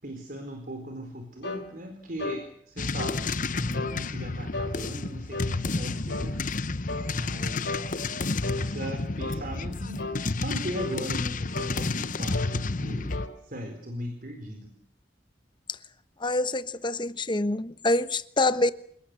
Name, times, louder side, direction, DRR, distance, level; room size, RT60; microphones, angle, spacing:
voice 1, 0.0-6.4 7.1-8.0 8.5-10.1 10.4-14.7, equal, 50° right, 4.4 m, -38 dB
sound 1, 1.4-1.7 2.2-2.4 3.0-3.2 3.7-4.0 4.5-4.8 5.3-5.6 6.1-6.3 6.9-7.1 7.7-7.9 8.4-8.7 9.2-9.4 10.0-10.2 10.8-11.0 11.5-11.8 12.3-12.6 13.1-13.3, left 2 dB, 85° left, 4.3 m, -34 dB
sound 2, 2.8-13.3, left 3 dB, 50° left, 1.0 m, -31 dB
voice 2, 16.2-18.7, left 2 dB, 25° left, 1.1 m, -26 dB
28.0 x 19.0 x 8.4 m
head